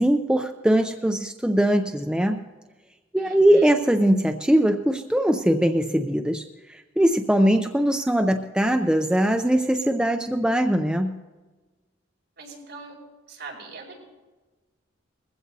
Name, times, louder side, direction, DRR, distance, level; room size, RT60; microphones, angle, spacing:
voice 1, 0.0-2.4 3.1-11.2, right 1 dB, 5° right, 5 dB, 0.4 m, -21 dB
voice 2, 3.2-3.7 12.4-13.0 13.3-14.0, right 3 dB, 55° right, -2 dB, 5.2 m, -41 dB
21.0 x 15.5 x 2.7 m, 1.2 s
head